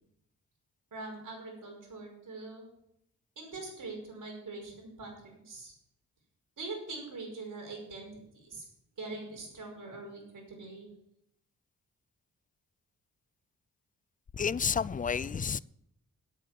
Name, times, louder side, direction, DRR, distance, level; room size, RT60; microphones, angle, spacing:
voice 1, 0.9-2.6 3.4-5.7 6.6-8.6 9.0-10.9, right 3 dB, 65° right, 5.5 m, -43 dB
voice 2, 14.4-15.6, left 6 dB, 25° left, 0.4 m, -30 dB
9.0 x 8.9 x 7.1 m
cardioid pair, 60°, 34 cm